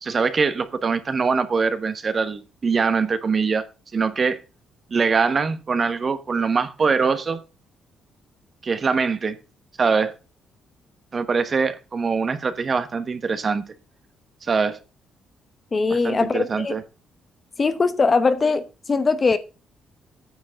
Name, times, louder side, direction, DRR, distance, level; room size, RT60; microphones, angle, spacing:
voice 1, 0.0-3.7 3.9-4.4 4.9-7.4 8.6-9.4 9.8-10.1 11.1-13.6 14.4-14.8 15.9-16.8, right 5 dB, 40° right, 1.1 m, -23 dB
voice 2, 15.7-16.7 17.6-18.6 18.9-19.4, left 4 dB, 35° left, 1.0 m, -20 dB
9.3 x 6.2 x 5.1 m
cardioid pair, 90°, 0 cm